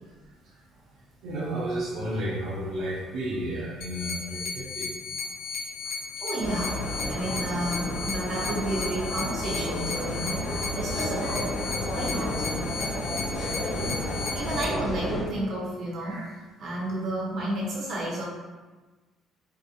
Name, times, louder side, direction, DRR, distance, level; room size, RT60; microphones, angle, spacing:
voice 1, 1.2-4.9 13.4-14.0 16.0-16.2, right 1 dB, 75° right, -7 dB, 0.7 m, -32 dB
sound 1, 3.8-14.6, left 5 dB, 75° left, 0.6 m, -35 dB
voice 2, 5.4-5.9 6.2-10.4 10.7-11.5 11.9-12.4 14.2-16.2 16.6-18.2, right 1 dB, 55° right, -5 dB, 1.2 m, -31 dB
sound 2, 6.4-15.2, left 1 dB, 35° left, 1.0 m, -31 dB
4.5 x 2.5 x 2.6 m, 1.3 s
cardioid pair, 125°, 0 cm